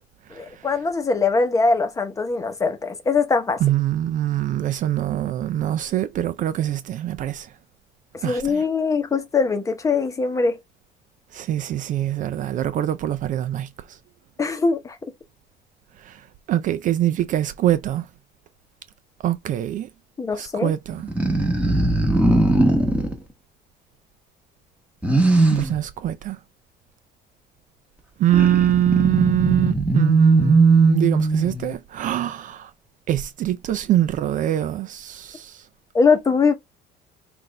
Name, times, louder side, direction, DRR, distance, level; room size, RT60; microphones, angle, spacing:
voice 1, 0.3-3.6 8.2-10.6 14.4-15.0 20.2-20.7 35.9-36.5, left 4 dB, 20° left, 0.9 m, -21 dB
voice 2, 3.6-7.5 8.2-8.6 11.3-13.7 16.0-16.2 16.5-18.1 19.2-19.9 20.4-21.1 25.5-26.4 28.2-32.7 33.1-35.6, right 12 dB, 45° right, 0.4 m, -23 dB
sound 1, 20.9-23.2 25.0-25.8 28.3-31.7, right 2 dB, 5° right, 1.2 m, -19 dB
5.8 x 2.6 x 3.3 m
cardioid pair, 155°, 18 cm